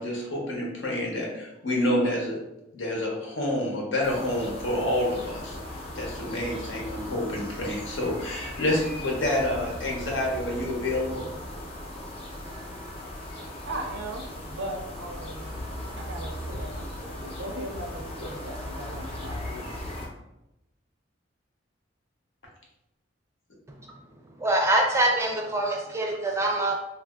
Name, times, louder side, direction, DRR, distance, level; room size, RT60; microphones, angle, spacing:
voice 1, 0.0-2.4 2.7-11.3, left 1 dB, 80° left, -1 dB, 0.8 m, -28 dB
sound 1, 4.0-20.1, left 1 dB, 30° left, 0.6 m, -38 dB
voice 2, 13.6-15.5 16.0-19.7, right 1 dB, 85° right, 2 dB, 0.6 m, -38 dB
voice 3, 24.3-26.7, right 1 dB, 15° right, 0 dB, 0.4 m, -24 dB
3.2 x 2.4 x 2.3 m, 0.90 s
head